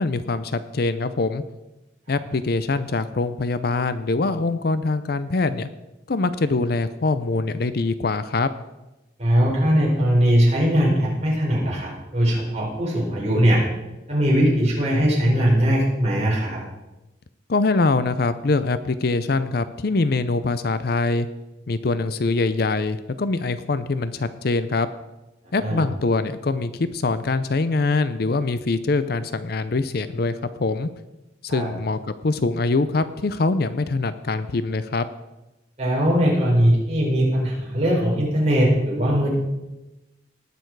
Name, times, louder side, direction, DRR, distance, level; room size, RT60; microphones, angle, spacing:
voice 1, 0.0-1.4 2.1-5.7 6.1-8.5 17.5-21.3 21.7-24.9 25.5-30.9 31.4-35.1, left 3 dB, 55° left, 13 dB, 0.5 m, -23 dB
voice 2, 9.2-13.6 14.1-16.6 25.6-25.8 31.5-31.7 35.8-39.3, equal, 35° right, -5 dB, 4.8 m, -20 dB
19.0 x 6.9 x 4.7 m, 1.0 s
head